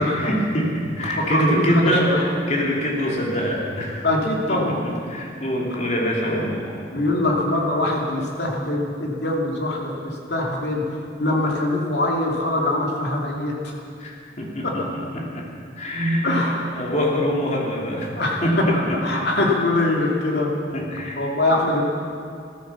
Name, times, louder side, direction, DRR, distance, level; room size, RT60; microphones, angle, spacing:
voice 1, 0.0-4.0 4.5-7.1 14.0-14.9 15.1-15.5 15.8-18.1 18.4-19.0 20.7-21.2, equal, 40° left, -2 dB, 3.0 m, -24 dB
voice 2, 1.3-2.4 4.0-4.8 6.3-6.5 6.9-10.8 11.2-13.7 14.6-14.7 16.2-16.6 18.1-20.5 21.2-21.8, left 2 dB, 65° left, -1 dB, 2.8 m, -23 dB
14.5 x 14.0 x 7.1 m, 2.3 s
head